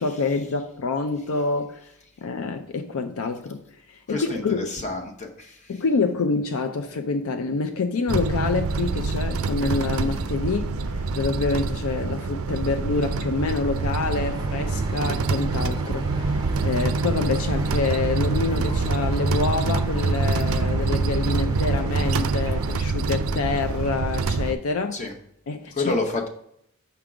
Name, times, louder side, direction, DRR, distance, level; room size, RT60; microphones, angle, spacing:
voice 1, 0.0-1.8 2.2-3.6 4.1-4.7 5.7-25.0 25.5-25.9, left 4 dB, 70° left, 0.4 m, -27 dB
voice 2, 4.1-5.8 24.9-25.1 25.7-26.3, left 2 dB, 30° left, 0.8 m, -29 dB
sound 1, 8.1-24.5, right 3 dB, 65° right, 0.4 m, -25 dB
sound 2, 14.1-22.8, right 2 dB, 20° right, 0.6 m, -39 dB
5.8 x 3.6 x 4.9 m
head